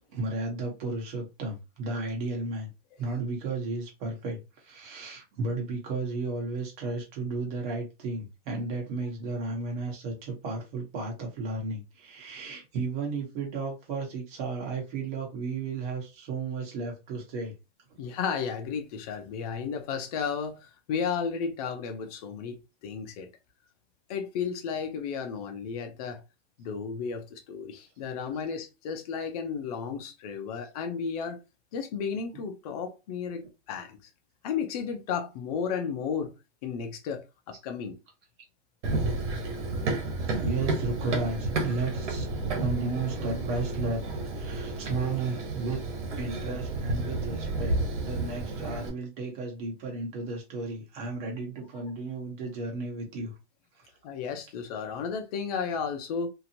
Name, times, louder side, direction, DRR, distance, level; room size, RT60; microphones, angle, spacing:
voice 1, 0.1-2.7 3.0-17.5 17.9-18.0 28.3-28.4 40.3-42.3 42.6-44.0 44.3-45.8 46.2-53.3 53.7-53.8, right 3 dB, 45° right, 1.4 m, -33 dB
voice 2, 18.0-20.6 20.9-22.6 22.8-23.3 24.1-26.2 26.6-31.4 31.7-34.0 34.4-36.3 36.6-38.0 54.0-56.3, left 6 dB, 35° left, 0.4 m, -33 dB
Run, 38.8-48.9, right 2 dB, 80° right, 1.3 m, -31 dB
2.8 x 2.5 x 2.8 m
supercardioid pair, 160°, 35 cm